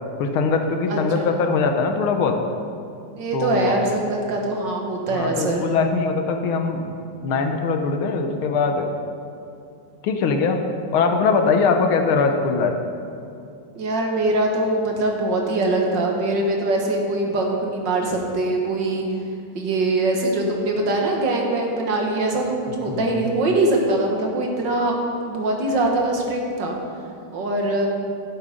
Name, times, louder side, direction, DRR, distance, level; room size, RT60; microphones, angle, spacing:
voice 1, 0.2-2.4 3.3-3.8 5.1-7.0 7.2-8.9 10.0-10.6 10.9-12.7 22.9-23.3, left 4 dB, 80° left, 5 dB, 1.7 m, -21 dB
voice 2, 0.9-1.3 3.2-5.7 11.7-11.8 13.8-19.1 19.6-24.9 25.3-26.8 27.3-27.9, right 2 dB, 60° right, 1 dB, 1.9 m, -22 dB
11.5 x 7.8 x 5.1 m, 2.6 s
omnidirectional pair, 2.3 m